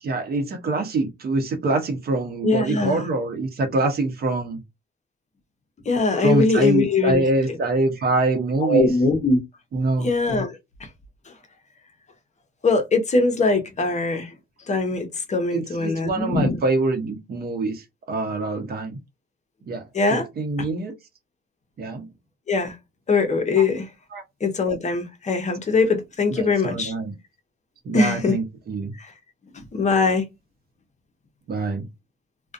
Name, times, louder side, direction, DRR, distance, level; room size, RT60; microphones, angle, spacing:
voice 1, 0.0-4.6 6.2-8.9 9.7-10.1 15.5-19.0 19.7-20.9 21.8-22.0 23.5-23.6 24.1-24.2 26.3-27.1 27.8-28.9 31.5-31.9, right 2 dB, 50° right, 0.8 m, -25 dB
voice 2, 2.4-3.0 5.9-7.2 8.6-9.4 10.0-10.6 12.6-14.3 14.7-16.6 19.9-20.3 20.6-20.7 22.5-22.7 23.1-23.9 24.4-26.9 27.9-28.3 29.0-29.1 29.7-30.2, left 3 dB, 35° left, 0.7 m, -21 dB
2.4 x 2.2 x 2.5 m
cardioid pair, 90°, 20 cm